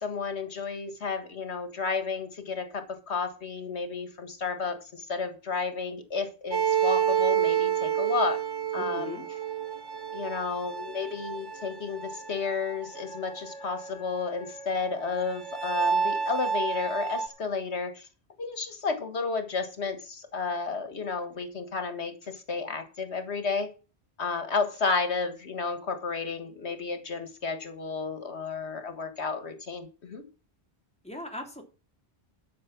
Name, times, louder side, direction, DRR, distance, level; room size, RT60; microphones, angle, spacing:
voice 1, 0.0-8.4 8.7-9.2 10.1-18.1 18.4-23.7 24.2-30.2, left 4 dB, 85° left, 8 dB, 1.9 m, -32 dB
sound 1, 6.5-13.8 14.1-14.2 14.4-14.5 14.9-17.3, right 8 dB, 30° right, 0.4 m, -29 dB
voice 2, 8.8-9.3 31.0-31.6, left 1 dB, 5° left, 2 dB, 3.1 m, -39 dB
Wind instrument woodwind instrument, 12.9-17.5, right 3 dB, 85° right, 3.1 m, -45 dB
12.0 x 6.3 x 6.0 m, 0.34 s
omnidirectional pair, 1.1 m